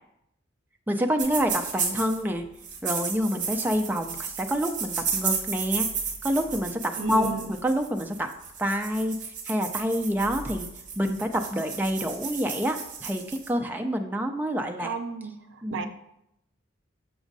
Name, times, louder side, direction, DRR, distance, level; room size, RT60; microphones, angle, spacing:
voice 1, 0.9-2.5 2.8-5.9 6.2-8.3 8.6-9.2 9.5-10.7 11.0-15.0 15.6-15.9, equal, 10° right, 4 dB, 0.3 m, -27 dB
sound 1, 1.2-2.2 2.6-13.5, right 6 dB, 40° right, 1.1 m, -33 dB
voice 2, 7.0-7.5 14.8-15.9, right 6 dB, 75° right, 8 dB, 0.5 m, -34 dB
6.1 x 6.1 x 2.6 m, 0.80 s
head